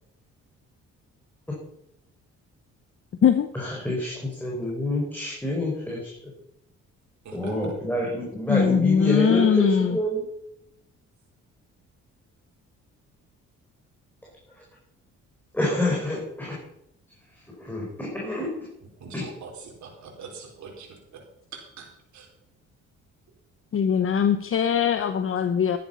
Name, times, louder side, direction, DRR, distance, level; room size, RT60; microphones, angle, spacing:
voice 1, 3.5-6.3 7.3-10.2 14.6-14.7 15.5-16.6 17.6-18.5 19.1-19.3, left 1 dB, 5° left, -4 dB, 4.6 m, -27 dB
voice 2, 7.2-7.7 19.0-21.2 21.5-21.9 22.1-22.3, right 5 dB, 70° right, 0 dB, 4.6 m, -43 dB
voice 3, 8.5-10.0 23.7-25.8, left 7 dB, 45° left, 9 dB, 0.9 m, -21 dB
12.5 x 10.5 x 5.6 m, 0.78 s
cardioid pair, 90°, 30 cm